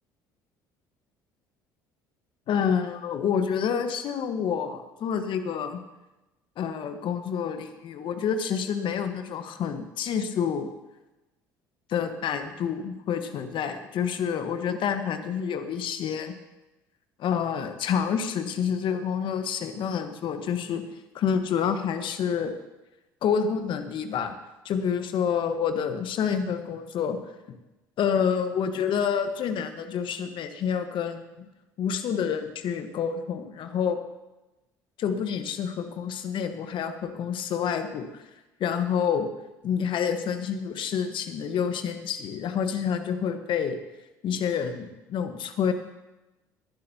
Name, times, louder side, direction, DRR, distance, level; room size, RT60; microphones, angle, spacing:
voice 1, 2.5-5.8 6.6-10.7 11.9-16.3 17.2-20.8 21.1-22.5 23.2-24.3 24.6-27.2 28.0-31.5 31.8-34.0 35.0-38.2 38.6-39.3 39.6-43.8 44.2-45.7, left 7 dB, 55° left, 8 dB, 1.3 m, -28 dB
19.0 x 11.0 x 2.9 m, 1.0 s
hypercardioid pair, 60°, 10 cm